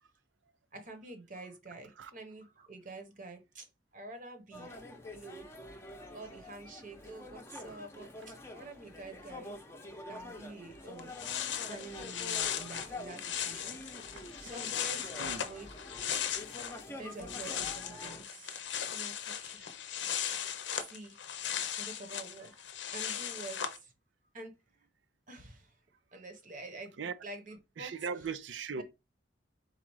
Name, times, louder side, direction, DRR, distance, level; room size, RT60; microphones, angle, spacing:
voice 1, 0.7-3.7 3.9-4.8 5.1-5.5 6.1-9.5 10.0-13.8 14.4-15.9 16.9-18.6 18.9-19.7 20.7-21.2 21.6-22.6 22.9-23.9 24.3-24.5 25.3-25.7 26.1-26.9 27.2-27.9 28.7-28.8, right 2 dB, 45° right, 1.0 m, -48 dB
sound 1, 4.5-18.2, left 1 dB, 15° left, 0.7 m, -47 dB
sound 2, 10.7-10.8 11.0-16.8 17.1-23.8, left 9 dB, 75° left, 0.6 m, -37 dB
voice 2, 27.8-28.8, right 5 dB, 85° right, 0.5 m, -38 dB
4.2 x 2.4 x 4.6 m
head